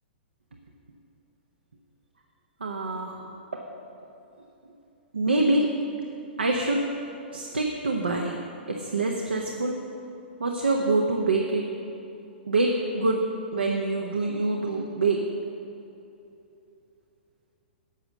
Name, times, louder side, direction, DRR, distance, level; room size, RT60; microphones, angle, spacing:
voice 1, 2.6-3.7 5.1-5.7 6.4-6.8 7.3-8.4 8.7-9.8 10.4-11.6 12.5-13.3 13.5-15.3, right 2 dB, 70° right, 1 dB, 0.9 m, -25 dB
11.5 x 7.0 x 6.6 m, 2.9 s
figure-of-eight pair, 110°, 6 cm